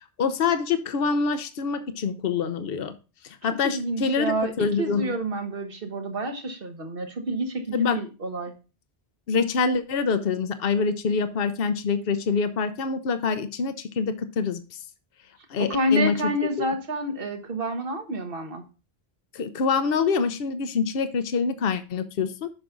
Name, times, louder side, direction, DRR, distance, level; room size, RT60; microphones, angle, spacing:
voice 1, 0.2-2.9 3.2-5.1 7.7-8.0 9.3-14.8 15.5-16.1 16.6-16.7 19.3-22.5, left 5 dB, 65° left, 10 dB, 1.0 m, -25 dB
voice 2, 3.6-4.5 4.8-8.5 15.6-18.6, right 1 dB, 60° right, 6 dB, 1.4 m, -28 dB
7.8 x 5.9 x 3.8 m, 0.32 s
omnidirectional pair, 1.1 m